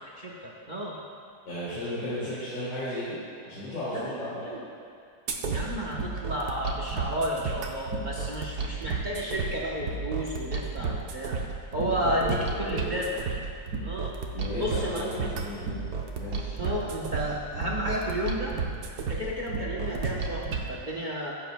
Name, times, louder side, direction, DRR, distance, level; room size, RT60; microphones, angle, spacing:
voice 1, 0.2-1.0 3.9-4.7 5.5-13.2 13.8-14.2 14.6-15.3 16.6-18.6 19.0-21.3, equal, 35° right, -4 dB, 0.7 m, -32 dB
voice 2, 1.4-4.4 11.7-12.8 14.3-15.9 16.2-16.6, left 1 dB, 75° left, -12 dB, 3.0 m, -35 dB
sound 1, 5.3-20.7, right 4 dB, 65° right, 1.3 m, -33 dB
17.0 x 8.1 x 2.2 m, 2.3 s
omnidirectional pair, 2.0 m